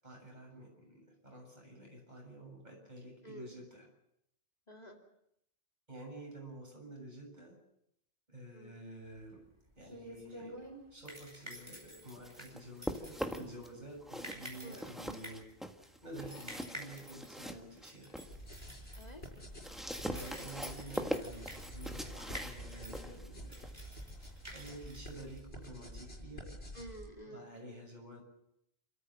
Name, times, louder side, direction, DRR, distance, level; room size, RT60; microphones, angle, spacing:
voice 1, 0.0-3.9 5.9-7.6 8.3-9.4 9.8-10.5 10.9-15.4 16.0-18.1 20.0-23.6 24.5-26.5 27.2-28.2, right 1 dB, 45° right, 0 dB, 7.6 m, -50 dB
voice 2, 3.2-3.5 4.7-5.0 8.5-8.8 14.6-14.8 18.9-19.3 26.7-27.5, right 1 dB, 40° left, 2 dB, 2.7 m, -49 dB
sound 1, 9.2-25.8, equal, 25° right, 5.5 m, -50 dB
sound 2, 11.8-13.7 14.0-18.4 18.8-25.4, equal, ahead, 1.5 m, -43 dB
sound 3, 18.2-27.1, equal, 75° left, 6.7 m, -48 dB
28.5 x 14.0 x 7.7 m, 0.78 s
omnidirectional pair, 1.0 m